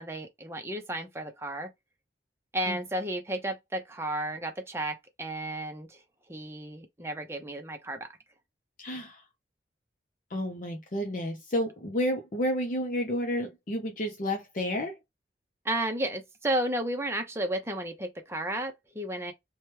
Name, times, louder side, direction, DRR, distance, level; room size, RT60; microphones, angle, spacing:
voice 1, 0.0-1.7 2.5-6.0 6.3-8.1 15.6-19.3, right 1 dB, 15° right, 0.6 m, -33 dB
voice 2, 8.8-9.2 10.3-14.9, equal, 45° left, 0.6 m, -31 dB
2.9 x 2.2 x 3.1 m
head